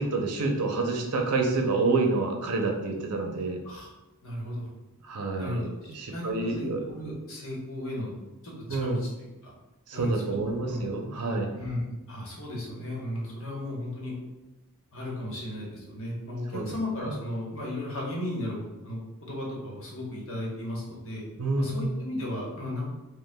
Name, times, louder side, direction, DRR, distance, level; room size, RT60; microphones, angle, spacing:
voice 1, 0.0-3.6 5.0-6.8 8.7-9.0 9.9-11.5 16.5-16.6 21.4-21.9, right 3 dB, 85° right, 3 dB, 0.6 m, -28 dB
voice 2, 4.2-4.7 5.4-8.1 8.4-8.5 8.8-9.5 9.9-10.3 10.6-10.8 11.6-14.1 14.9-21.2 21.5-22.9, left 1 dB, 65° left, -3 dB, 1.1 m, -35 dB
5.2 x 2.2 x 2.2 m, 1.1 s
head